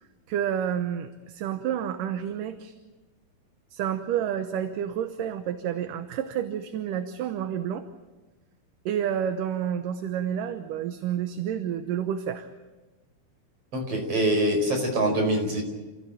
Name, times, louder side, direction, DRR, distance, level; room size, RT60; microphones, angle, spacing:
voice 1, 0.0-2.7 3.7-7.9 8.9-12.5, right 9 dB, 70° right, 8 dB, 2.4 m, -29 dB
voice 2, 13.7-15.6, right 1 dB, 40° right, 2 dB, 5.9 m, -24 dB
28.5 x 15.5 x 9.0 m, 1.2 s
omnidirectional pair, 4.4 m